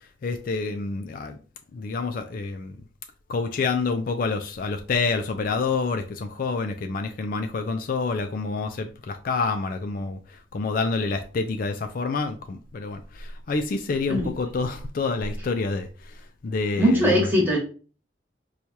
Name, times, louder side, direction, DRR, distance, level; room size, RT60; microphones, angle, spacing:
voice 1, 0.2-1.4 1.7-2.8 3.3-17.3, left 4 dB, 50° left, 0.3 m, -28 dB
voice 2, 16.8-17.6, equal, 10° right, 1.2 m, -20 dB
4.5 x 2.3 x 2.7 m
head